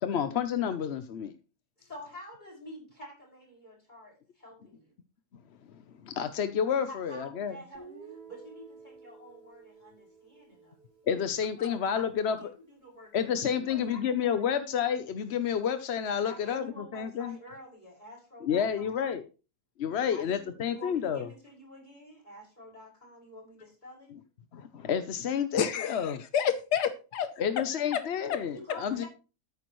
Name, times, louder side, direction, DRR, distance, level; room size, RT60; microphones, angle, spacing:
voice 1, 0.0-1.3 6.0-7.6 11.1-12.5 13.1-17.4 18.4-19.2 19.8-21.3 24.1-24.2 24.5-26.2 27.4-29.0, left 8 dB, 55° left, 10 dB, 0.8 m, -30 dB
voice 2, 1.8-4.9 6.9-10.8 11.1-11.2 11.6-14.4 16.2-18.9 20.1-24.1 28.5-29.1, left 1 dB, 25° left, -1 dB, 5.9 m, -48 dB
Guitar, 7.7-11.7, right 5 dB, 85° right, 4.8 m, -52 dB
voice 3, 25.6-27.3 27.9-28.0 28.3-28.4, left 8 dB, 90° left, 10 dB, 1.5 m, -29 dB
13.5 x 10.5 x 3.1 m, 0.33 s
omnidirectional pair, 1.7 m